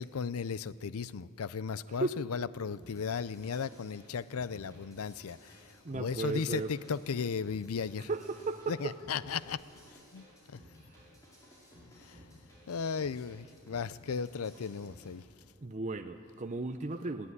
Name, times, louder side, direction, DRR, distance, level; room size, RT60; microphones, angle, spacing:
voice 1, 0.0-5.6 5.9-8.1 8.7-9.6 10.1-10.6 12.0-12.2 12.7-15.2, left 6 dB, 80° left, 17 dB, 0.5 m, -36 dB
sound 1, 2.8-15.1, equal, 15° left, 6.4 m, -57 dB
voice 2, 5.8-6.7 8.1-8.9 10.9-11.0 15.6-17.3, right 2 dB, 35° right, 6 dB, 0.6 m, -35 dB
20.5 x 15.0 x 9.7 m, 2.5 s
head